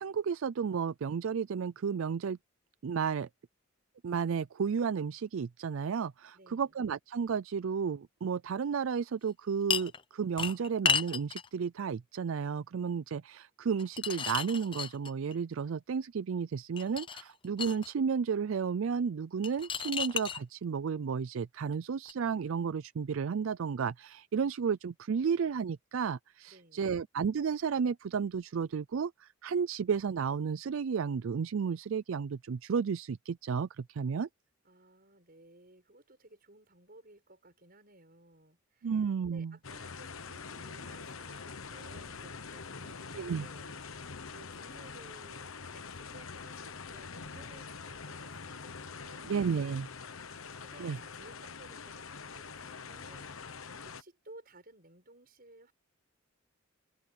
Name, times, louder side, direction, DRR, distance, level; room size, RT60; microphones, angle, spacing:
voice 1, 0.0-2.4 2.8-3.3 4.0-34.3 38.8-39.5 43.1-43.5 49.2-49.9 50.8-51.0, right 6 dB, 70° right, 0.4 m, -32 dB
voice 2, 6.3-6.7 26.5-27.0 34.6-49.4 50.2-55.7, right 2 dB, 45° right, 6.8 m, -57 dB
sound 1, 9.7-10.0 10.4-11.5 13.8-15.4 16.8-17.9 19.4-20.4 22.1-22.2, left 6 dB, 25° left, 0.6 m, -33 dB
sound 2, 39.6-54.0, left 5 dB, 75° left, 1.2 m, -45 dB
head